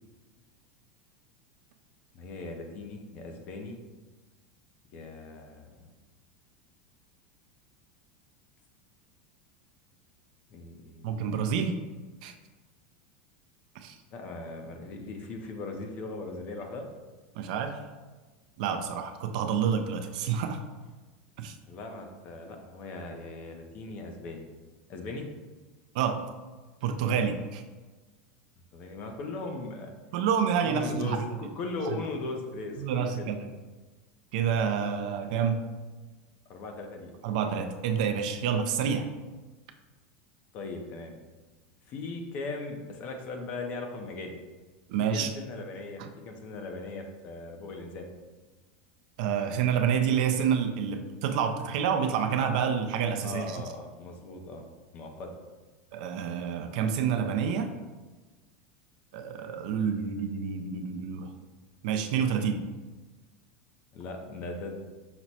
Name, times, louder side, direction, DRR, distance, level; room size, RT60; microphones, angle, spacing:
voice 1, 2.1-3.8 4.9-5.8 10.5-11.3 14.1-16.9 21.7-24.5 24.9-25.3 28.7-29.9 30.6-33.3 36.5-37.1 40.5-41.2 41.9-44.4 45.0-48.1 53.2-54.6 54.9-55.3 63.9-64.8, left 3 dB, 30° left, 4 dB, 0.5 m, -38 dB
voice 2, 11.0-11.8 12.2-12.3 13.8-14.0 17.4-17.8 18.6-20.6 21.4-21.5 25.9-26.2 26.8-27.6 30.1-31.2 32.8-33.5 34.3-35.7 37.2-39.1 44.9-45.3 46.0-46.1 49.2-53.6 55.9-57.7 59.1-61.3 61.8-62.6, right 7 dB, 55° right, 6 dB, 0.4 m, -28 dB
5.9 x 2.1 x 4.0 m, 1.3 s
supercardioid pair, 180°, 5 cm